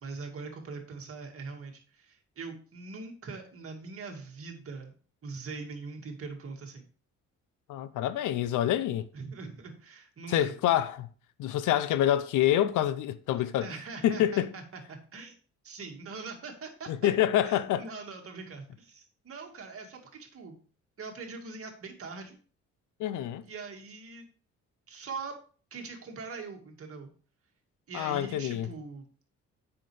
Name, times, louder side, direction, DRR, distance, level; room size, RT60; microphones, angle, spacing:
voice 1, 0.0-4.9 5.2-6.9 9.1-10.6 13.6-15.3 15.6-16.9 17.4-20.6 21.0-22.4 23.5-24.3 24.9-25.4 25.7-27.1 27.9-29.1, right 4 dB, 50° right, 2.1 m, -42 dB
voice 2, 7.7-9.1 10.3-11.1 11.4-13.7 14.0-14.5 16.9-17.9 23.0-23.4 27.9-28.7, left 12 dB, 80° left, 0.6 m, -27 dB
7.7 x 5.8 x 3.3 m
cardioid pair, 90°, 30 cm